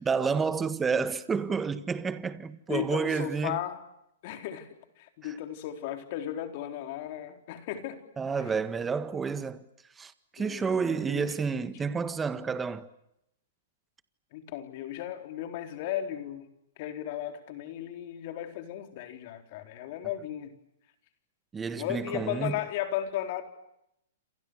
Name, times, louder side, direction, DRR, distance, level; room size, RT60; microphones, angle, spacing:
voice 1, 0.0-3.6 5.2-5.3 8.2-9.6 10.0-12.9 21.5-22.6, right 5 dB, 15° right, 1.6 m, -30 dB
voice 2, 2.7-3.8 4.2-4.7 5.0-8.0 10.4-11.2 14.3-16.5 16.8-20.5 21.7-23.4, left 11 dB, 50° left, 4.1 m, -35 dB
29.0 x 27.5 x 6.6 m
hypercardioid pair, 130°, 0 cm